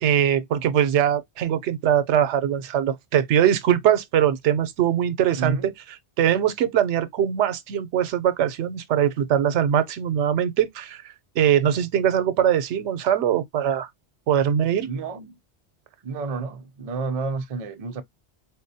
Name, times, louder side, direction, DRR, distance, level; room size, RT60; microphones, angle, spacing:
voice 1, 0.0-5.7 6.2-13.9 14.3-14.9, right 9 dB, 90° right, 0.9 m, -22 dB
voice 2, 5.4-5.7 14.8-15.3 16.0-18.0, right 4 dB, 50° right, 0.5 m, -30 dB
4.1 x 2.0 x 2.6 m
omnidirectional pair, 1.1 m